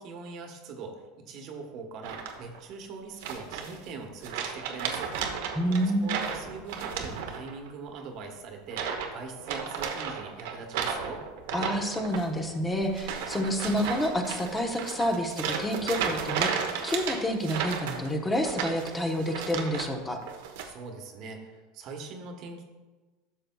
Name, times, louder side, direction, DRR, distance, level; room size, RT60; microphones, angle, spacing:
voice 1, 0.0-5.1 6.0-11.2 20.6-22.6, right 4 dB, 50° right, 3 dB, 1.3 m, -42 dB
sound 1, 2.0-2.6 3.2-3.9 4.2-7.7 7.9-8.2 8.7-9.1 9.4-19.9 20.2-20.7, right 7 dB, 80° right, 1.0 m, -34 dB
voice 2, 5.5-6.2 11.5-20.2, equal, 15° left, 3 dB, 1.0 m, -29 dB
12.0 x 6.8 x 2.3 m, 1.2 s
supercardioid pair, 120°, 0 cm